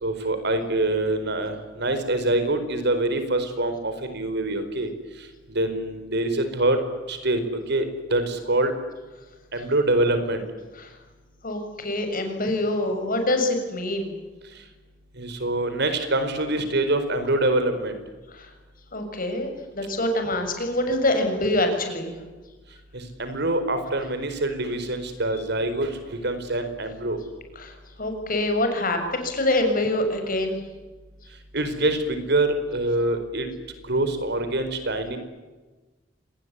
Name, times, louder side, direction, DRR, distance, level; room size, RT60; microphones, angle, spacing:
voice 1, 0.0-4.9 5.5-6.8 7.1-7.4 7.7-8.7 9.5-10.4 15.2-18.0 22.9-27.2 31.5-33.5 33.8-35.2, right 2 dB, 60° right, 9 dB, 4.6 m, -25 dB
voice 2, 11.4-14.1 18.3-18.5 18.9-22.1 27.5-30.6, left 1 dB, 50° left, 6 dB, 6.8 m, -25 dB
26.5 x 20.5 x 9.9 m, 1.2 s
head